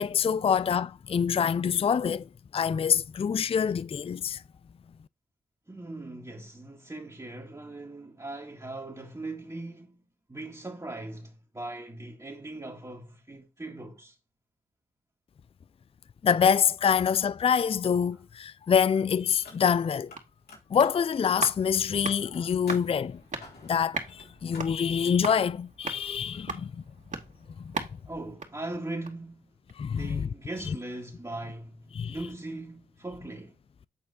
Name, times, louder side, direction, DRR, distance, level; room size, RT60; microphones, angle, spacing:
voice 1, 0.0-4.4 16.2-20.1 20.7-23.2 23.6-26.8 27.6-27.7 29.8-30.3 30.7-30.8 31.9-32.2, left 7 dB, 35° left, 0.4 m, -26 dB
voice 2, 5.7-14.2 28.1-29.6 29.9-33.6, right 2 dB, 20° right, 2.0 m, -40 dB
Car, 19.3-20.2 20.4-25.5, left 3 dB, 75° left, 4.1 m, -50 dB
sound 1, 20.0-29.3 29.7-29.8, right 4 dB, 50° right, 2.5 m, -40 dB
8.7 x 4.4 x 4.1 m
supercardioid pair, 40°, 16 cm